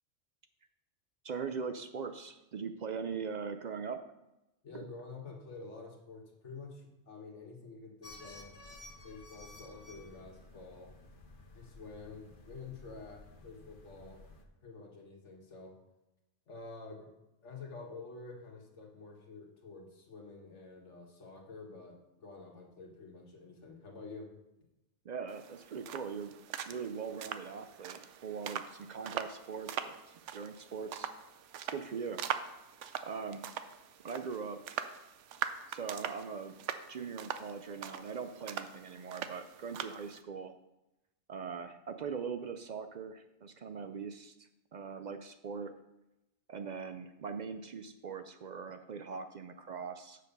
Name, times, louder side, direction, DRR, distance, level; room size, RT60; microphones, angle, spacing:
voice 1, 1.2-4.0 25.1-26.3 26.7-30.0 30.3-31.1 31.7-32.2 33.0-33.4 34.0-34.8 35.7-36.5 36.9-40.5 41.3-45.7 46.5-50.2, right 5 dB, 60° right, 8 dB, 0.5 m, -41 dB
voice 2, 4.6-8.5 9.0-10.9 11.5-14.2 14.6-15.7 16.5-17.1 17.4-24.3, left 4 dB, 85° left, 0 dB, 1.8 m, -49 dB
sound 1, 8.0-14.4, left 2 dB, 50° left, 1.1 m, -54 dB
sound 2, 25.3-40.2, right 9 dB, 90° right, 0.9 m, -42 dB
7.5 x 6.6 x 5.3 m, 0.94 s
omnidirectional pair, 1.2 m